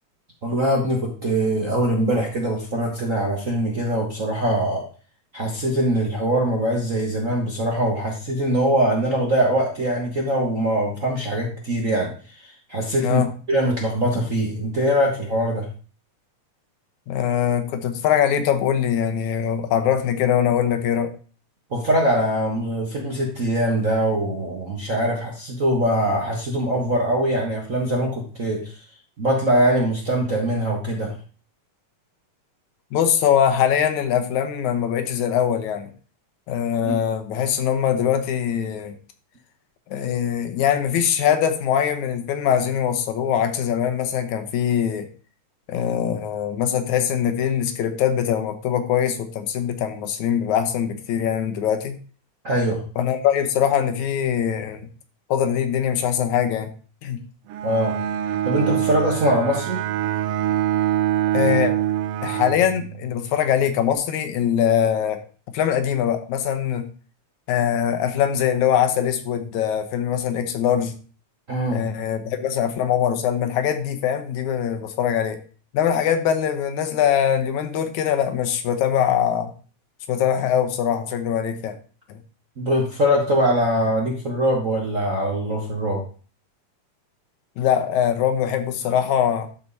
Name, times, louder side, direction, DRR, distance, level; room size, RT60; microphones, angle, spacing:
voice 1, 0.4-4.8 5.3-12.1 12.4-13.2 13.5-15.7 21.7-28.8 29.2-31.1 36.8-37.0 52.4-52.8 57.6-57.9 58.4-59.8 71.5-71.8 82.6-86.0, right 1 dB, 45° right, 0 dB, 1.1 m, -22 dB
voice 2, 13.0-13.3 17.1-21.1 32.9-35.9 36.5-39.0 39.9-45.1 45.7-52.0 53.0-54.9 55.3-56.7 57.0-57.2 61.3-61.7 62.2-65.2 65.5-66.9 67.5-71.0 71.7-75.4 75.7-79.5 80.1-81.8 82.1-82.2 87.6-89.5, left 9 dB, 80° left, 8 dB, 2.4 m, -22 dB
Bowed string instrument, 57.5-63.3, right 12 dB, 80° right, 1.4 m, -24 dB
12.0 x 4.7 x 4.1 m, 0.39 s
omnidirectional pair, 3.3 m